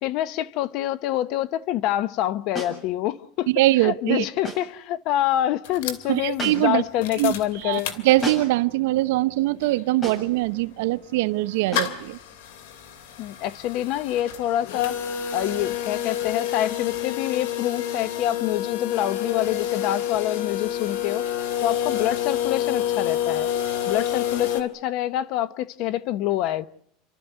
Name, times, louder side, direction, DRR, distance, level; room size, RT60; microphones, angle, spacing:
voice 1, 0.0-3.5 3.8-8.0 13.2-15.0 15.3-21.2 21.6-23.5 23.9-26.7, left 13 dB, 55° left, 0.9 m, -26 dB
sound 1, 2.5-2.8 4.4-4.7 6.4-6.8 8.2-8.6 10.0-10.4 11.7-12.0, left 1 dB, 25° left, 7.5 m, -33 dB
voice 2, 3.5-4.2 6.1-6.8 7.2-7.3 7.6-12.2, right 18 dB, 80° right, 0.9 m, -22 dB
sound 2, 5.6-8.6 9.0-9.1 9.3-24.6, left 10 dB, 85° left, 2.6 m, -29 dB
30.0 x 13.0 x 9.4 m
supercardioid pair, 150°, 0 cm